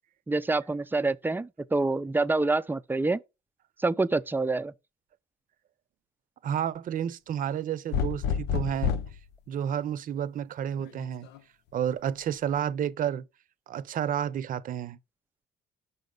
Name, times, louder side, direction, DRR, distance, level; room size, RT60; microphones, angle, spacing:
voice 1, 0.3-3.2 3.8-4.7, right 3 dB, 10° right, 0.5 m, -26 dB
voice 2, 6.4-8.9 9.5-11.3 11.7-13.2 13.7-15.0, right 9 dB, 55° right, 0.7 m, -30 dB
sound 1, 7.9-9.2 10.8-11.4, left 7 dB, 85° left, 0.7 m, -28 dB
5.7 x 5.2 x 3.8 m
cardioid pair, 110°, 17 cm